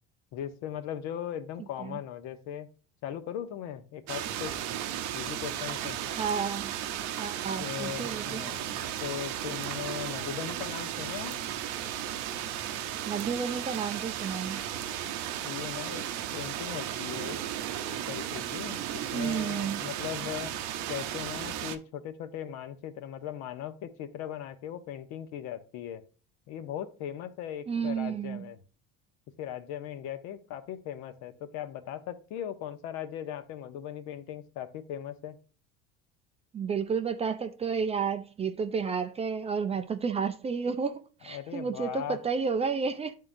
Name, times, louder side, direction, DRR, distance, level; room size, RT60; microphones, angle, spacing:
voice 1, 0.3-2.7 3.0-4.7 5.1-6.0 7.6-11.4 15.4-17.4 17.9-20.6 20.9-26.0 26.5-28.6 29.3-35.4 41.2-42.2, left 10 dB, 65° left, 0.9 m, -39 dB
sound 1, 4.1-21.8, right 10 dB, 65° right, 0.7 m, -35 dB
voice 2, 6.2-6.7 7.2-8.4 13.1-14.6 19.1-19.8 27.7-28.5 36.5-43.1, right 6 dB, 20° right, 0.4 m, -31 dB
10.5 x 3.7 x 2.6 m
supercardioid pair, 125°, 30 cm